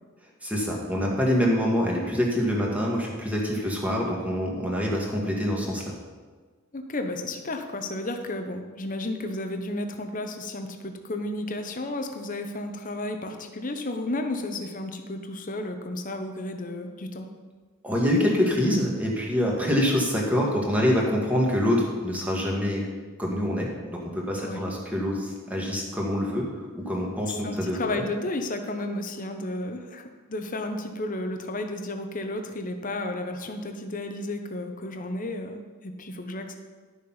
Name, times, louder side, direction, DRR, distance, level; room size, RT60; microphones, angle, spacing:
voice 1, 0.4-6.0 17.8-22.8 23.2-28.0, equal, 5° right, -2 dB, 1.8 m, -25 dB
voice 2, 6.7-17.3 24.4-24.6 27.3-36.6, left 2 dB, 35° left, 5 dB, 0.9 m, -33 dB
11.5 x 6.7 x 5.6 m, 1.4 s
head